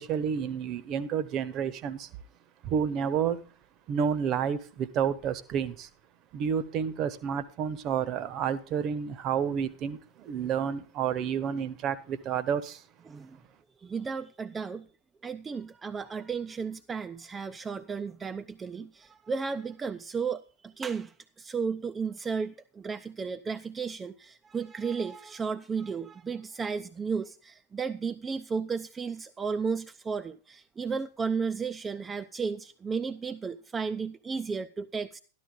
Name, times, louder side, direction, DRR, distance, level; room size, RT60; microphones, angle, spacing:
voice 1, 0.0-2.1 2.6-3.4 3.9-5.9 6.3-12.8, right 7 dB, 35° right, 1.1 m, -30 dB
voice 2, 13.1-13.4 13.8-14.9 15.2-35.2, right 5 dB, 15° right, 0.6 m, -34 dB
13.0 x 12.0 x 3.8 m
figure-of-eight pair, 90°, 0 cm